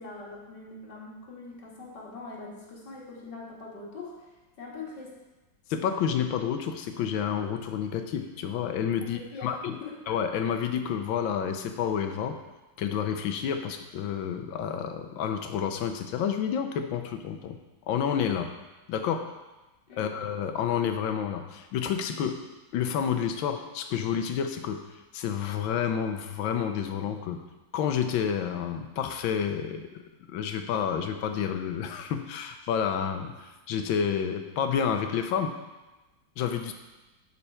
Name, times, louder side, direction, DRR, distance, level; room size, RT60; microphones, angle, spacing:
voice 1, 0.0-4.3 4.6-5.2 9.0-10.0 19.9-20.1, left 3 dB, 60° left, -4 dB, 2.3 m, -42 dB
voice 2, 5.7-9.8 10.1-12.4 12.8-17.6 17.9-18.5 18.9-19.3 20.0-22.4 22.7-24.8 25.1-27.4 27.7-29.9 30.3-35.5 36.4-36.7, left 8 dB, 80° left, 7 dB, 1.4 m, -29 dB
11.0 x 4.5 x 4.3 m, 1.1 s
omnidirectional pair, 2.1 m